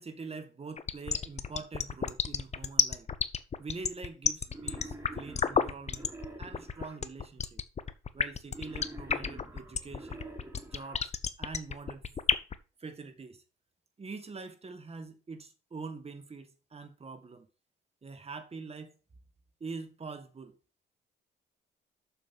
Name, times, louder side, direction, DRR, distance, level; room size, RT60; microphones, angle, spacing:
voice 1, 0.0-3.1 3.6-6.1 6.4-7.6 8.1-10.3 10.6-11.1 11.4-12.1 12.8-13.4 14.0-17.5 18.0-18.9 19.6-20.6, right 4 dB, 30° right, 1.8 m, -44 dB
sound 1, 0.8-12.5, left 6 dB, 35° left, 0.9 m, -30 dB
Wild animals, 4.5-7.0 8.5-11.0, right 2 dB, 15° right, 3.6 m, -47 dB
7.4 x 6.8 x 5.6 m
cardioid pair, 90°, 20 cm